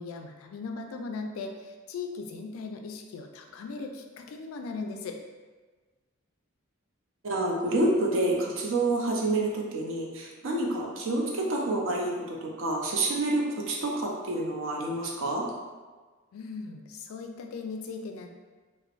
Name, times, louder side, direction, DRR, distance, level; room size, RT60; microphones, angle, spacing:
voice 1, 0.0-5.2 16.3-18.3, left 4 dB, 85° left, 4 dB, 0.3 m, -38 dB
voice 2, 7.2-15.5, right 2 dB, 70° right, -1 dB, 0.5 m, -28 dB
3.0 x 2.0 x 2.4 m, 1.3 s
head